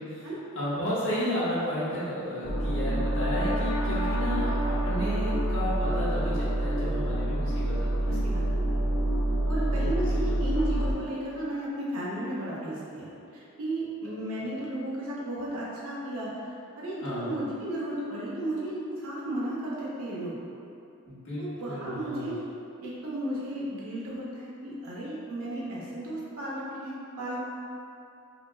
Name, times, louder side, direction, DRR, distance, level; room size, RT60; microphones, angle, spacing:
voice 1, 0.5-7.9 9.5-10.3 17.0-17.3 21.1-22.3, equal, 60° left, -10 dB, 1.2 m, -33 dB
sound 1, 2.4-10.9, right 1 dB, 80° left, 0.5 m, -27 dB
voice 2, 8.0-8.8 9.5-20.4 21.4-22.4 22.8-27.4, right 1 dB, 80° right, -6 dB, 0.9 m, -34 dB
5.0 x 2.4 x 2.4 m, 2.6 s
head